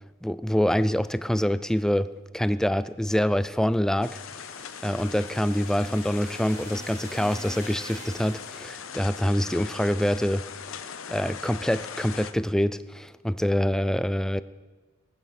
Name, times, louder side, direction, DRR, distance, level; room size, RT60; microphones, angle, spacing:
voice 1, 0.2-4.2 4.8-10.4 10.7-14.4, equal, 5° left, 15 dB, 0.4 m, -25 dB
sound 1, 3.9-8.9, right 2 dB, 35° right, 2.9 m, -46 dB
sound 2, 4.0-12.3, left 7 dB, 70° left, 0.8 m, -40 dB
19.5 x 9.7 x 5.9 m, 1.3 s
head